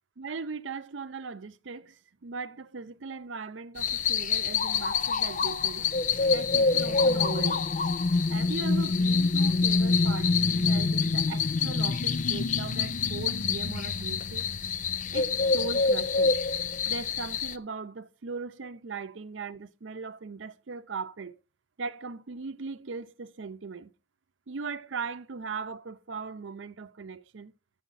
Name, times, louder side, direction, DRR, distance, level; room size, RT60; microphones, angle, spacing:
voice 1, 0.2-5.9 6.3-7.7 8.3-14.5 15.1-16.4 16.9-21.3 21.8-23.9 24.5-27.5, right 4 dB, 85° right, 0.6 m, -39 dB
sound 1, 3.8-17.5, left 4 dB, 40° left, 0.4 m, -26 dB
10.0 x 7.8 x 4.0 m
head